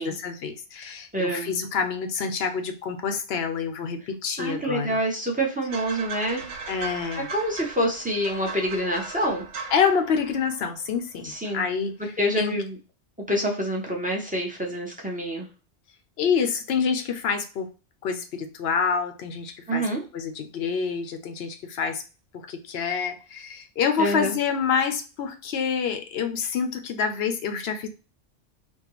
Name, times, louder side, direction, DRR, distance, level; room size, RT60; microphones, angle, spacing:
voice 1, 0.0-5.0 6.7-7.3 9.7-12.5 16.2-17.7 18.0-19.9 20.1-22.0 22.3-27.9, left 6 dB, 65° left, 7 dB, 0.8 m, -27 dB
voice 2, 1.1-1.5 4.4-6.5 7.3-9.4 11.2-11.7 12.2-12.8 13.3-15.5 19.7-20.0 24.0-24.3, equal, 10° right, -1 dB, 0.6 m, -27 dB
sound 1, 5.7-11.0 11.3-11.6, right 5 dB, 80° right, 1.0 m, -38 dB
3.6 x 2.2 x 2.9 m, 0.33 s
omnidirectional pair, 1.2 m